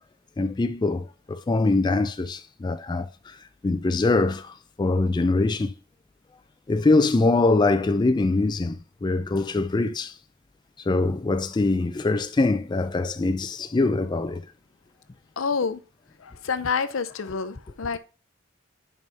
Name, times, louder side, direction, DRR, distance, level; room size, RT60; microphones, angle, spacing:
voice 1, 0.4-3.4 3.6-5.7 6.7-10.1 10.9-14.4 17.3-17.4, left 3 dB, 20° left, 0.3 m, -23 dB
voice 2, 15.4-15.8 16.2-18.0, left 5 dB, 80° left, 0.6 m, -28 dB
5.3 x 4.8 x 5.4 m
head